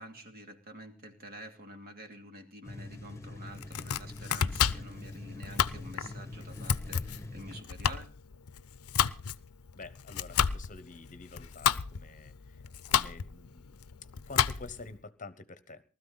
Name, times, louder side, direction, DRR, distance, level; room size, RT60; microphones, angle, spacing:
voice 1, 0.0-8.1, right 1 dB, 45° right, 5 dB, 2.7 m, -48 dB
sound 1, 2.6-7.6, left 2 dB, 15° left, 1.5 m, -44 dB
Domestic sounds home sounds, 3.5-14.9, left 8 dB, 85° left, 0.7 m, -32 dB
voice 2, 9.7-12.6 12.9-13.8 14.3-15.8, left 3 dB, 35° left, 13 dB, 1.1 m, -48 dB
19.5 x 13.0 x 4.1 m, 0.36 s
head